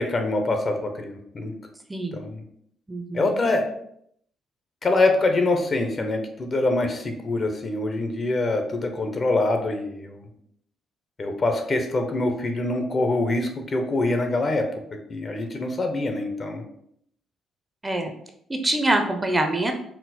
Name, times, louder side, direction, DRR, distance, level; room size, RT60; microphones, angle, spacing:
voice 1, 0.0-1.5 2.1-2.4 3.1-3.6 4.8-10.3 11.2-14.7 15.1-16.6, left 2 dB, 40° left, 5 dB, 0.6 m, -24 dB
voice 2, 1.9-2.2 2.9-3.3 17.8-18.1 18.5-19.7, right 1 dB, 15° right, 4 dB, 0.5 m, -24 dB
4.2 x 2.0 x 4.1 m, 0.70 s
cardioid pair, 90°, 0 cm